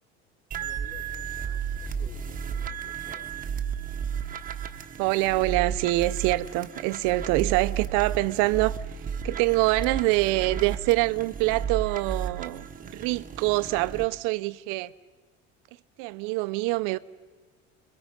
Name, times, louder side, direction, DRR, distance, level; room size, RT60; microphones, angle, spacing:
voice 1, 0.5-3.5, left 3 dB, 45° left, 3.7 m, -52 dB
sound 1, 0.5-14.0, right 7 dB, 25° right, 1.2 m, -34 dB
voice 2, 5.0-8.8 9.2-14.9 16.0-17.0, right 19 dB, 75° right, 0.7 m, -25 dB
25.5 x 22.5 x 5.3 m
supercardioid pair, 115°, 32 cm